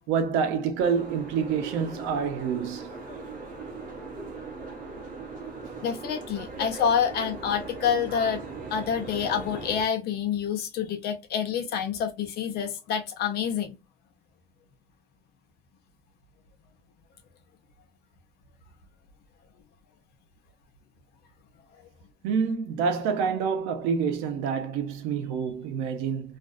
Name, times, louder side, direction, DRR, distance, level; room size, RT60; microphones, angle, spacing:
voice 1, 0.1-2.9 22.2-26.4, right 6 dB, 90° right, 0.6 m, -27 dB
Boat Water vehicle, 0.8-9.9, right 3 dB, 45° right, 0.9 m, -39 dB
voice 2, 5.8-8.4 8.7-13.8, left 8 dB, 55° left, 0.7 m, -27 dB
2.5 x 2.3 x 2.3 m
cardioid pair, 135°, 20 cm